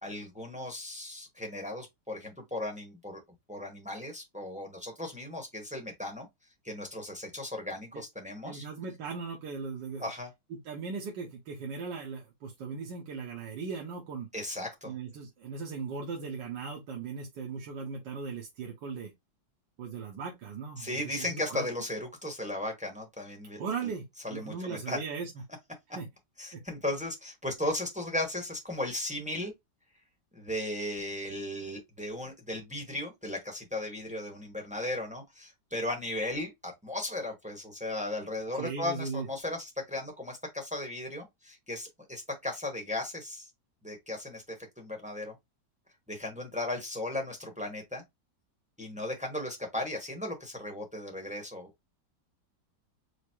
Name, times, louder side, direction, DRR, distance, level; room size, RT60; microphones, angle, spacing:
voice 1, 0.0-3.2 3.5-6.3 6.6-8.6 10.0-10.3 14.3-14.9 20.8-23.6 24.2-25.0 26.4-29.5 30.3-43.5 43.8-44.4 44.8-45.3 46.1-48.0 48.8-51.7, left 1 dB, 5° right, 0.8 m, -36 dB
voice 2, 8.4-10.1 10.5-14.3 14.9-19.1 19.8-21.7 23.6-25.3 26.0-26.1 26.5-26.6 38.5-39.3, right 5 dB, 70° right, 1.6 m, -38 dB
5.0 x 2.0 x 4.4 m
omnidirectional pair, 2.0 m